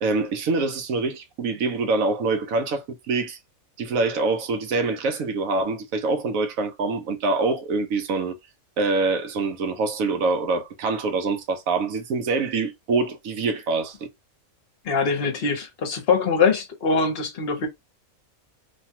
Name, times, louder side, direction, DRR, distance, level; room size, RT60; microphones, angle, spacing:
voice 1, 0.0-3.4 3.8-8.4 8.8-14.0, right 3 dB, 75° right, 1.1 m, -25 dB
voice 2, 14.8-17.7, left 5 dB, 50° left, 1.0 m, -23 dB
3.2 x 2.3 x 2.8 m
omnidirectional pair, 1.5 m